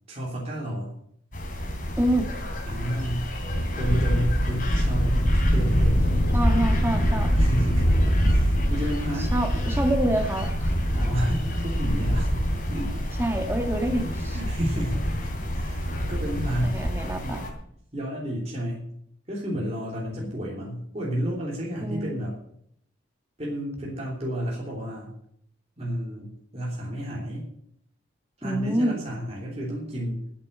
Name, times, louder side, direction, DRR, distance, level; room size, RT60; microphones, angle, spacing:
voice 1, 0.1-1.0 2.6-3.3 3.8-6.3 7.4-7.9 8.2-9.3 10.9-13.1 14.3-15.8 16.1-16.8 17.1-17.4 17.9-18.9 19.3-22.4 23.4-25.1 25.8-27.5 28.4-30.3, equal, 30° right, -4 dB, 3.1 m, -31 dB
sound 1, 1.3-17.5, equal, 40° left, 3.1 m, -25 dB
voice 2, 2.0-2.3 6.3-7.3 9.2-10.7 13.2-14.4 16.6-17.5 21.8-22.2 28.4-29.0, right 1 dB, 10° right, 3 dB, 1.7 m, -27 dB
11.0 x 8.6 x 8.6 m, 0.70 s
head